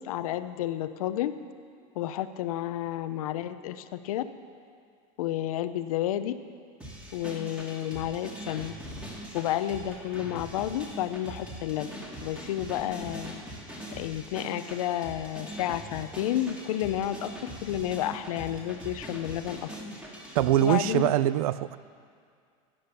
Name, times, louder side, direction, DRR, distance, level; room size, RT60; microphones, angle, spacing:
voice 1, 0.0-1.4 2.0-4.2 5.2-6.3 7.1-8.7 9.3-11.9 12.2-13.3 14.0-19.7 20.6-21.1, left 12 dB, 85° left, 12 dB, 0.8 m, -31 dB
sound 1, 6.8-21.0, equal, 5° right, 2.0 m, -42 dB
voice 2, 20.3-21.8, right 13 dB, 85° right, 17 dB, 0.5 m, -23 dB
15.0 x 8.8 x 6.8 m, 2.2 s
supercardioid pair, 135°, 18 cm